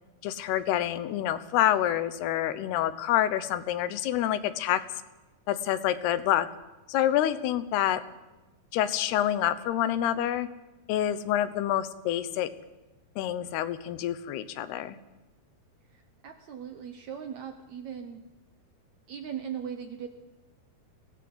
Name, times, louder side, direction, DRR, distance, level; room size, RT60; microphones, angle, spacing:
voice 1, 0.2-4.8 5.5-6.5 6.9-8.0 8.7-10.5 10.9-12.5 13.2-15.0, left 12 dB, 85° left, 14 dB, 3.0 m, -27 dB
voice 2, 16.2-18.2 19.1-20.1, right 8 dB, 70° right, 6 dB, 1.8 m, -38 dB
22.0 x 17.5 x 7.9 m, 1.1 s
omnidirectional pair, 4.6 m